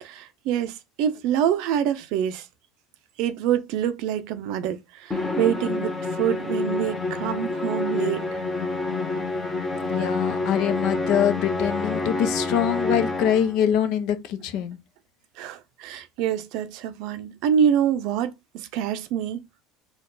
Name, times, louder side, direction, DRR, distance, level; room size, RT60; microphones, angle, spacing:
voice 1, 0.0-2.5 3.2-8.2 15.4-19.4, right 9 dB, 65° right, 0.5 m, -26 dB
Musical instrument, 5.1-13.6, left 3 dB, 15° left, 0.9 m, -28 dB
voice 2, 9.9-14.8, left 9 dB, 60° left, 0.7 m, -24 dB
4.3 x 2.3 x 3.9 m
supercardioid pair, 130°, 0 cm